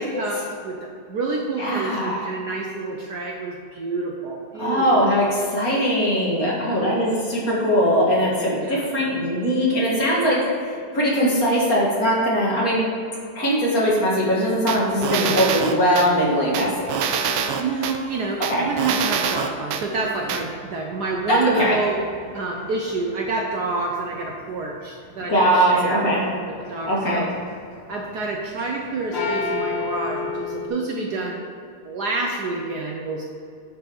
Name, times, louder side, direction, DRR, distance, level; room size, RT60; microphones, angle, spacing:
voice 1, 0.0-5.1 6.4-7.1 8.6-8.9 15.1-15.4 17.6-22.0 22.3-26.1 26.5-27.3 27.9-31.4 31.8-33.2, right 3 dB, 60° right, 0 dB, 1.2 m, -28 dB
voice 2, 1.6-2.3 4.6-10.4 10.9-12.8 13.4-17.0 18.5-18.6 21.3-21.8 25.3-26.2 26.9-27.2, equal, 45° left, -5 dB, 2.3 m, -20 dB
sound 1, 14.7-16.1 16.5-18.0 18.4-19.8 20.3-20.4, right 6 dB, 80° right, 1.5 m, -24 dB
sound 2, 20.0-24.1 24.4-25.2 25.7-26.3 26.5-28.8 29.1-30.7, left 4 dB, 65° left, 2.1 m, -31 dB
10.0 x 4.5 x 5.4 m, 2.4 s
omnidirectional pair, 2.3 m